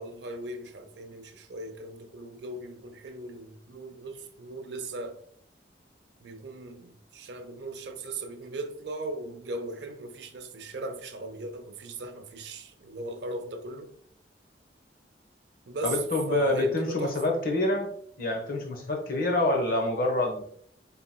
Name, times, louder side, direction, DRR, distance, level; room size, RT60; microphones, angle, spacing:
voice 1, 0.0-5.2 6.2-13.9 15.7-16.0 16.3-17.2, right 2 dB, 75° right, 0.5 m, -38 dB
voice 2, 15.8-17.9 18.2-20.4, left 2 dB, 55° left, 0.9 m, -27 dB
4.3 x 3.7 x 2.2 m
head